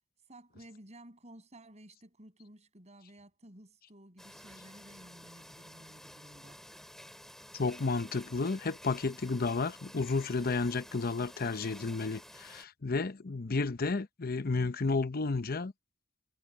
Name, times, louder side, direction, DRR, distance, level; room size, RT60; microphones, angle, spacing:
voice 1, 0.3-6.7, right 1 dB, 35° right, 7.1 m, -54 dB
sound 1, 4.2-12.6, equal, ahead, 2.3 m, -52 dB
voice 2, 7.5-15.7, left 3 dB, 50° left, 0.8 m, -32 dB
head